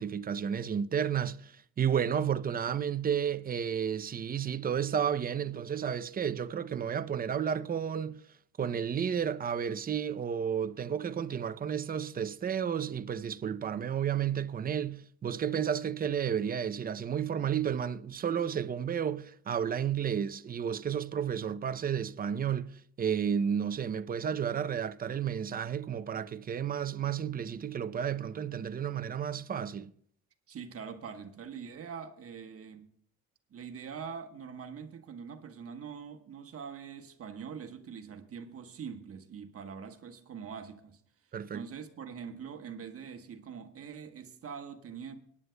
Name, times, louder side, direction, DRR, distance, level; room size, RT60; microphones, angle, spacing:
voice 1, 0.0-8.2 8.6-29.9 41.3-41.6, right 8 dB, 30° right, 0.6 m, -32 dB
voice 2, 30.5-32.9 33.5-41.0 41.5-45.2, right 6 dB, 45° right, 1.3 m, -43 dB
23.5 x 9.7 x 2.2 m
supercardioid pair, 85°, 32 cm